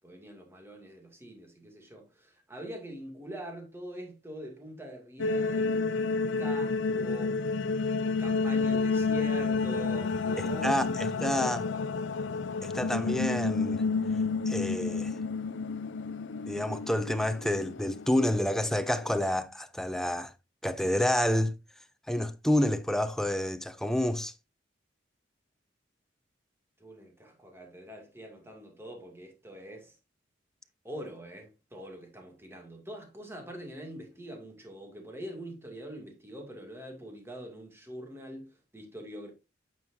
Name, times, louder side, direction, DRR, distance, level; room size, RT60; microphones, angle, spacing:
voice 1, 0.0-5.8 6.3-7.4 8.2-11.8 26.8-30.0 30.8-39.3, right 1 dB, 15° right, 2.3 m, -44 dB
sound 1, 5.2-19.3, left 4 dB, 75° left, 0.5 m, -30 dB
voice 2, 10.4-11.6 12.6-13.8 14.5-15.1 16.5-20.3 20.6-21.5 22.1-24.3, left 1 dB, ahead, 0.5 m, -29 dB
9.0 x 6.3 x 2.6 m
head